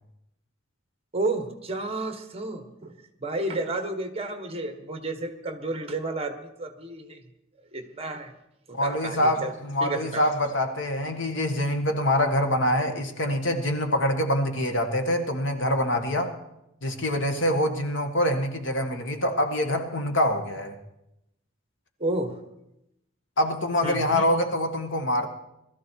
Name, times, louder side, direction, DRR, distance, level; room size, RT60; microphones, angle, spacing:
voice 1, 1.1-2.9 3.2-7.2 7.7-8.3 8.7-9.5 9.8-10.3 22.0-22.4 23.8-24.2, right 2 dB, 30° right, 7 dB, 1.4 m, -31 dB
voice 2, 8.7-16.3 16.8-20.7 23.4-25.3, left 1 dB, 65° left, 6 dB, 1.7 m, -25 dB
20.0 x 13.5 x 4.7 m, 0.85 s
head